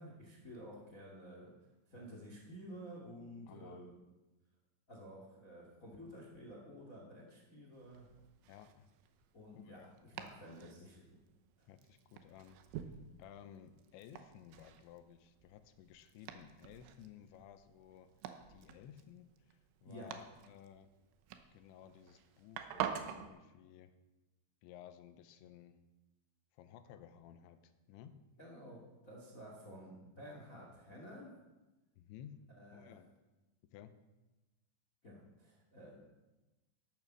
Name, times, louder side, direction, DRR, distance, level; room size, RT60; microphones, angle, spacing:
voice 1, 0.0-1.5 1.9-3.9 4.9-8.1 9.3-11.2 11.6-11.7 19.8-20.1 28.4-31.4 32.5-33.0 35.0-36.0, equal, 55° left, 0 dB, 0.8 m, -52 dB
voice 2, 3.5-3.8 8.5-8.9 9.5-9.9 11.7-12.9 13.2-18.1 18.5-20.9 21.5-23.9 24.6-25.8 26.5-28.2 29.5-29.6 32.0-32.4 32.7-33.1 33.7-33.9, left 10 dB, 80° left, 9 dB, 2.9 m, -56 dB
Domestic sounds home sounds, 7.7-23.3, right 9 dB, 80° right, 3.2 m, -48 dB
14.0 x 8.7 x 6.2 m, 1.1 s
omnidirectional pair, 5.4 m